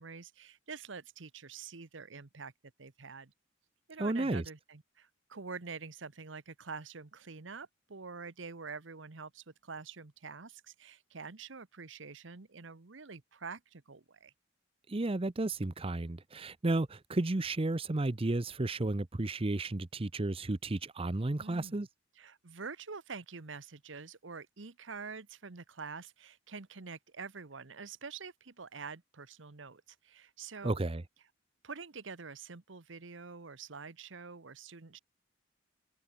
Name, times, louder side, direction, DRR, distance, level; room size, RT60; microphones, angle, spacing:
voice 1, 0.0-2.5 2.8-3.3 3.9-14.3 21.4-21.9 22.2-30.8 31.6-35.0, right 5 dB, 70° right, 1.1 m, -46 dB
voice 2, 4.0-4.4 14.9-21.9 30.6-31.0, right 2 dB, 30° right, 0.7 m, -33 dB
head